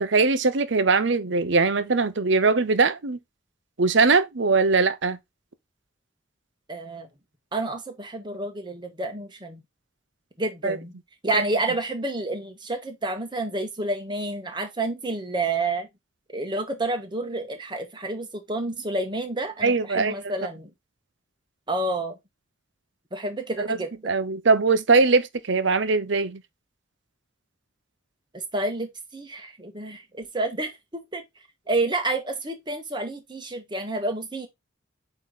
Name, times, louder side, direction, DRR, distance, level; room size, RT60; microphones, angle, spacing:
voice 1, 0.0-3.2 3.8-5.2 10.6-10.8 11.3-11.4 19.6-20.1 23.6-23.8 24.1-26.4, right 4 dB, 65° right, 0.8 m, -21 dB
voice 2, 6.7-7.1 7.5-9.6 10.4-10.9 11.2-15.9 16.3-20.7 21.7-22.1 23.1-24.1 28.3-31.2 31.7-34.5, right 2 dB, 25° right, 1.4 m, -29 dB
8.6 x 3.2 x 4.0 m
head